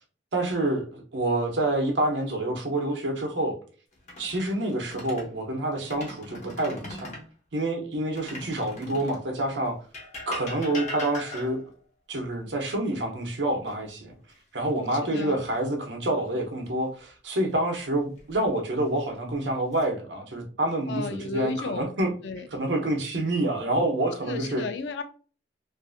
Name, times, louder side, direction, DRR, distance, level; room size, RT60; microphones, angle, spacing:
voice 1, 0.3-3.6 4.2-7.1 7.5-9.8 10.3-11.6 12.1-14.1 14.5-22.1 22.5-24.6, right 1 dB, 70° right, 0.7 m, -27 dB
sound 1, 3.9-5.3 5.8-7.3 8.2-9.3 9.9-11.8 13.7-14.4 14.8-15.0 17.9-18.5 19.2-19.9, left 2 dB, 40° left, 0.8 m, -40 dB
voice 2, 14.9-15.4 20.9-21.9 22.2-22.5 24.2-25.0, left 4 dB, 70° left, 0.4 m, -33 dB
2.6 x 2.5 x 2.4 m
head